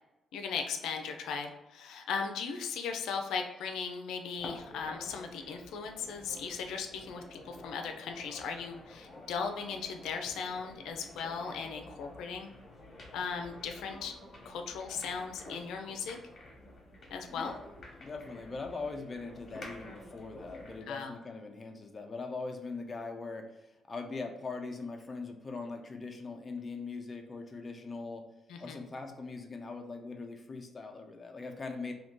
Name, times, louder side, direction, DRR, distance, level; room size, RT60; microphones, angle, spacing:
voice 1, 0.3-12.5 13.1-14.1 14.4-16.2 17.1-17.5 20.9-21.1 28.5-28.8, left 5 dB, 90° left, 4 dB, 0.4 m, -37 dB
sound 1, 4.4-20.9, left 1 dB, 45° left, 0.9 m, -50 dB
voice 2, 17.3-17.7 18.0-28.3 28.6-31.9, left 3 dB, 25° left, 3 dB, 0.4 m, -41 dB
2.7 x 2.6 x 3.6 m, 0.99 s
cardioid pair, 130°, 0 cm